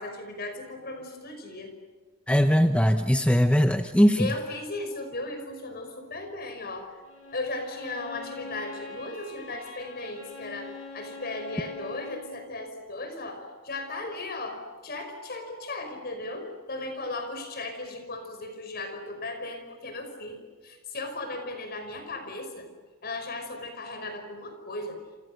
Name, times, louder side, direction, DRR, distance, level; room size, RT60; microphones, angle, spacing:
voice 1, 0.0-1.7 4.2-7.0 7.3-22.7 23.0-25.0, left 2 dB, 45° left, 6 dB, 5.5 m, -36 dB
voice 2, 2.3-4.3, equal, 5° left, 7 dB, 0.9 m, -20 dB
Bowed string instrument, 7.0-12.4, left 4 dB, 70° left, 6.4 m, -43 dB
28.5 x 28.5 x 6.7 m, 1.4 s
head